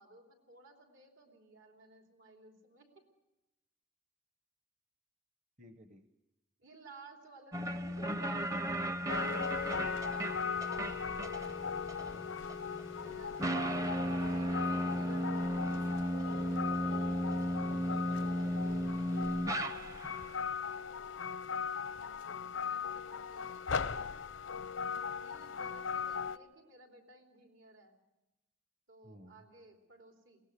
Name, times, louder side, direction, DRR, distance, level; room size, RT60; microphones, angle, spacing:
voice 1, 0.0-3.0 6.6-9.5 13.0-13.5 14.0-15.3 20.8-21.3 22.5-23.6 24.8-28.0 28.9-30.4, right 2 dB, 80° right, 2 dB, 3.3 m, -57 dB
voice 2, 5.6-6.1 12.1-12.4 16.2-19.1 29.0-29.4, right 2 dB, 35° right, 8 dB, 0.9 m, -55 dB
sound 1, 7.5-20.3, equal, 15° right, 0.6 m, -35 dB
sound 2, 9.1-26.4, left 6 dB, 85° left, 0.7 m, -39 dB
22.0 x 18.0 x 6.7 m, 0.96 s
head